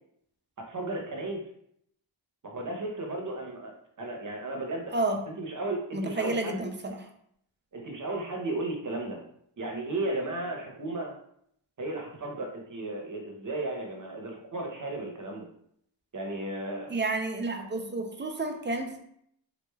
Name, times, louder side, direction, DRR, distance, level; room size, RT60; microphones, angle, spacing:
voice 1, 0.7-1.4 2.4-6.6 7.7-9.2 9.6-11.1 11.8-15.5 16.1-16.9, right 2 dB, 40° right, 1 dB, 0.8 m, -34 dB
voice 2, 4.9-5.2 5.9-7.1 16.9-19.0, right 2 dB, 25° right, 5 dB, 0.4 m, -30 dB
3.7 x 3.1 x 2.3 m, 0.71 s
wide cardioid pair, 90°, 48 cm